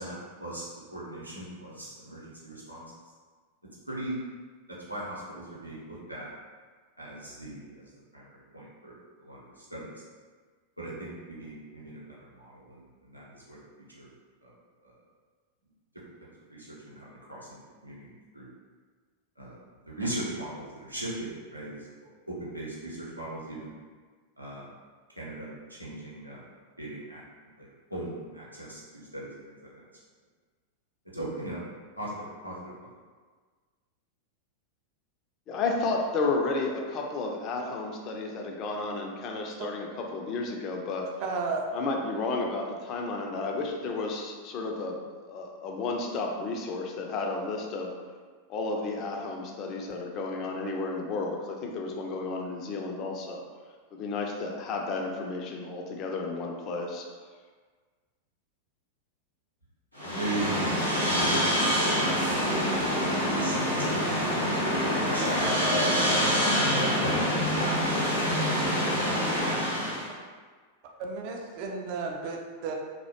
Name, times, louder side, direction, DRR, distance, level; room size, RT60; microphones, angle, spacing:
voice 1, 0.0-2.8 3.9-4.2 4.9-6.3 7.0-7.8 8.1-9.9 10.8-13.6 13.9-14.1 14.4-14.5 14.8-14.9 16.5-18.5 19.4-19.6 19.8-21.9 22.3-23.8 24.4-24.7 25.2-26.4 26.8-29.7 31.1-31.6 32.0-32.9 60.0-64.3 64.5-66.2, right 1 dB, 90° right, -6 dB, 0.6 m, -39 dB
voice 2, 35.5-41.1 41.7-47.9 48.5-53.4 53.9-57.0, left 3 dB, 35° left, 1 dB, 0.3 m, -32 dB
voice 3, 41.2-41.6 69.9-70.1 71.0-72.7, right 4 dB, 45° right, 1 dB, 0.3 m, -33 dB
sound 1, 60.0-70.1, equal, 85° left, 0.6 m, -26 dB
2.4 x 2.1 x 2.7 m, 1.5 s
figure-of-eight pair, 90°, 0 cm